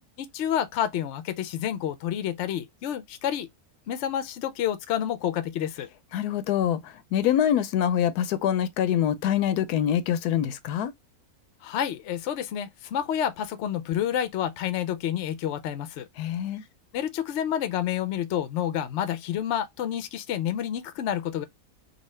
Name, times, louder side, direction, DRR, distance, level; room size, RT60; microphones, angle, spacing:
voice 1, 0.2-3.5 3.9-5.9 11.6-16.1 16.9-21.4, left 10 dB, 65° left, 0.7 m, -29 dB
voice 2, 6.1-10.9 16.2-16.6, left 10 dB, 85° left, 1.1 m, -25 dB
3.9 x 2.4 x 3.1 m
omnidirectional pair, 1.6 m